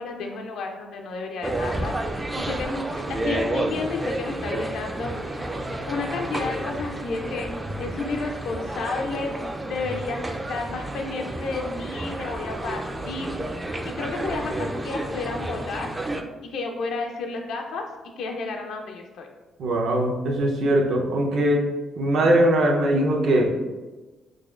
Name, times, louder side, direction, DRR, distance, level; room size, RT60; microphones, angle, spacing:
voice 1, 0.0-7.5 7.8-15.9 16.4-17.9 18.2-19.3, left 3 dB, 80° left, 2 dB, 0.4 m, -32 dB
sound 1, 1.4-16.2, right 1 dB, 20° right, 0.3 m, -31 dB
voice 2, 19.6-21.6 22.0-23.6, right 1 dB, 70° right, 0 dB, 0.6 m, -21 dB
3.9 x 3.0 x 2.4 m, 1.2 s
cardioid pair, 90°, 0 cm